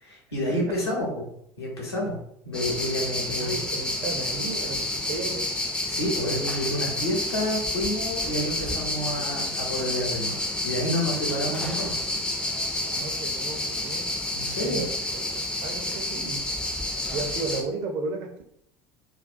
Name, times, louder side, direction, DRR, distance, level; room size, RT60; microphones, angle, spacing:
voice 1, 0.0-1.3 1.6-2.2 2.4-3.6 4.6-4.7 5.9-11.9 14.3-14.8, left 1 dB, 80° left, -4 dB, 0.8 m, -29 dB
sound 1, 2.5-17.6, left 1 dB, 5° left, 0.4 m, -29 dB
voice 2, 3.4-5.5 12.8-14.2 14.6-16.4 17.1-18.4, right 3 dB, 50° right, 3 dB, 0.5 m, -34 dB
2.3 x 2.2 x 2.5 m, 0.70 s
figure-of-eight pair, 65°, 13 cm